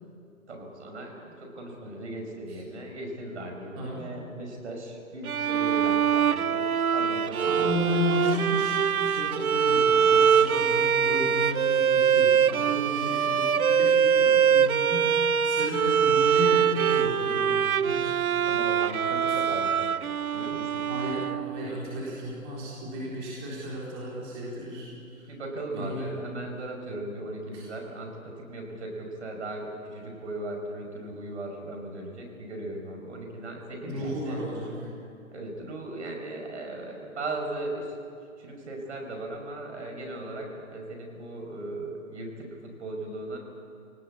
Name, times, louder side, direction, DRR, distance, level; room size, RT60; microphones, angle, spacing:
voice 1, 0.5-6.7 6.9-7.9 18.5-20.0 20.3-20.9 25.3-34.4 35.3-37.9 38.4-43.4, right 2 dB, 55° right, 2 dB, 5.6 m, -37 dB
Bowed string instrument, 5.3-21.8, right 7 dB, 85° right, 0.9 m, -23 dB
voice 2, 7.4-17.5 17.8-18.5 20.9-25.3 25.7-26.1 27.5-27.6 33.8-34.7, left 1 dB, 20° right, -6 dB, 3.9 m, -34 dB
23.5 x 18.5 x 8.5 m, 2.4 s
hypercardioid pair, 165°, 42 cm